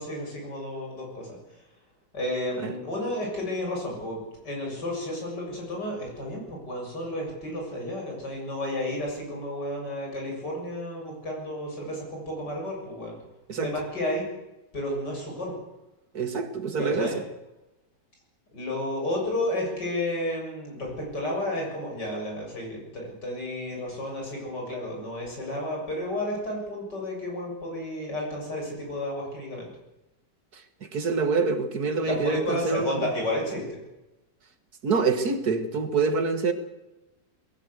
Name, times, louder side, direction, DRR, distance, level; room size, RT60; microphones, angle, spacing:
voice 1, 0.0-1.4 2.1-4.2 4.4-13.1 13.6-14.2 14.7-15.5 16.8-17.2 18.5-29.7 32.0-33.8, left 1 dB, 70° left, -1 dB, 8.1 m, -32 dB
voice 2, 16.1-17.1 30.9-33.0 34.8-36.5, right 4 dB, 60° right, 8 dB, 2.2 m, -26 dB
21.5 x 16.5 x 8.1 m, 0.99 s
omnidirectional pair, 1.9 m